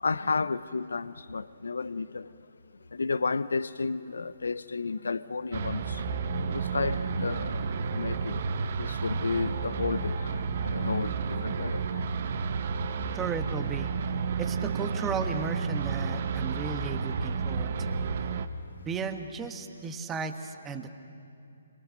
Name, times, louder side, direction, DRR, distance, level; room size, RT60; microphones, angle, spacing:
voice 1, 0.0-2.3 2.9-6.0 6.4-8.4 8.8-12.4, left 4 dB, 80° left, 0.6 m, -32 dB
sound 1, 5.5-18.5, right 5 dB, 50° right, 1.2 m, -31 dB
voice 2, 13.1-13.9 14.4-18.0 18.8-20.9, right 5 dB, 15° right, 1.3 m, -35 dB
26.0 x 23.5 x 6.5 m
figure-of-eight pair, 140°, 0 cm